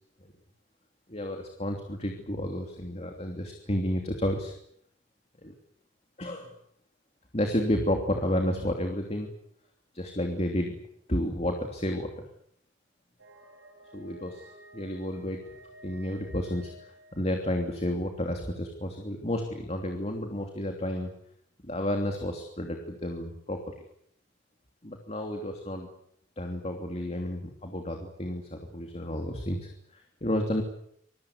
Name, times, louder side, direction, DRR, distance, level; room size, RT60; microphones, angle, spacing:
voice 1, 1.1-4.5 5.4-5.5 6.2-6.5 7.3-9.3 9.9-10.8 11.1-12.3 13.9-15.4 15.8-21.1 21.6-23.7 24.8-25.9 26.4-30.6, left 1 dB, 35° left, 3 dB, 3.0 m, -31 dB
sound 1, 13.2-17.9, equal, 85° right, 7.9 m, -53 dB
26.5 x 22.0 x 8.3 m, 0.71 s
head